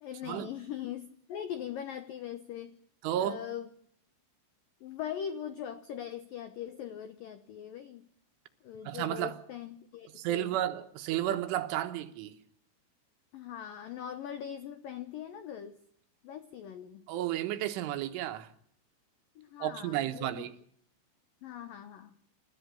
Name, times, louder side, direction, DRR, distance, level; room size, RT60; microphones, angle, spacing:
voice 1, 0.0-2.7 3.2-3.7 4.8-8.0 8.6-10.6 13.3-15.8 16.2-17.1 19.4-20.5 21.4-22.2, left 9 dB, 85° left, 2.0 m, -41 dB
voice 2, 3.0-3.4 8.9-9.3 10.2-12.4 17.1-18.5 19.6-20.5, right 12 dB, 80° right, 3.8 m, -32 dB
28.5 x 14.0 x 6.8 m
omnidirectional pair, 5.7 m